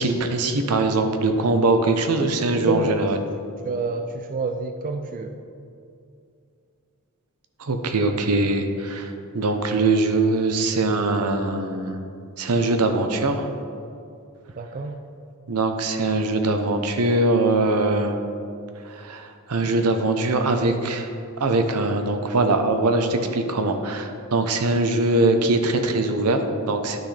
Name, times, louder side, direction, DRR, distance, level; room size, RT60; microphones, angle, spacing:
voice 1, 0.0-3.2 7.6-12.0 12.4-13.5 15.5-18.2 18.8-27.0, right 2 dB, 85° right, 7 dB, 0.7 m, -22 dB
voice 2, 3.6-5.4 14.6-15.0, right 3 dB, 40° right, 6 dB, 0.4 m, -28 dB
10.5 x 6.3 x 3.3 m, 2.5 s
head